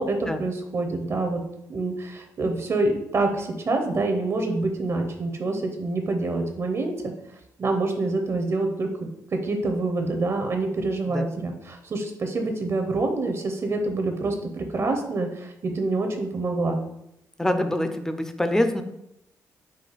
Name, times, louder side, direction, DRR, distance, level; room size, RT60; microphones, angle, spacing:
voice 1, 0.0-1.4 1.7-7.1 7.6-8.9 9.3-16.8, right 2 dB, 45° right, 4 dB, 0.7 m, -26 dB
voice 2, 17.4-18.8, left 1 dB, 10° left, 8 dB, 0.5 m, -24 dB
5.0 x 2.3 x 4.0 m, 0.80 s
cardioid pair, 85°, 7 cm